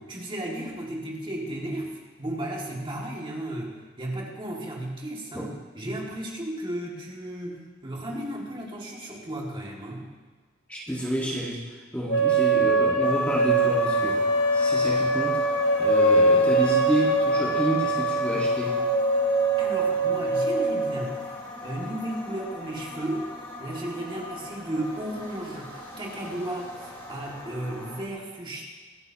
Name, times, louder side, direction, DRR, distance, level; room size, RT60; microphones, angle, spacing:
voice 1, 0.0-5.5 5.8-10.0 19.6-21.2 21.6-23.3 23.6-28.7, right 1 dB, 25° right, -2 dB, 2.4 m, -34 dB
voice 2, 10.7-14.3 14.5-15.5 15.8-18.8, equal, 5° left, -5 dB, 1.8 m, -30 dB
sound 1, 12.1-21.1, right 2 dB, 60° left, 1.3 m, -22 dB
sound 2, 13.0-28.0, left 1 dB, 25° left, 3.9 m, -41 dB
25.0 x 9.6 x 3.0 m, 1.4 s
head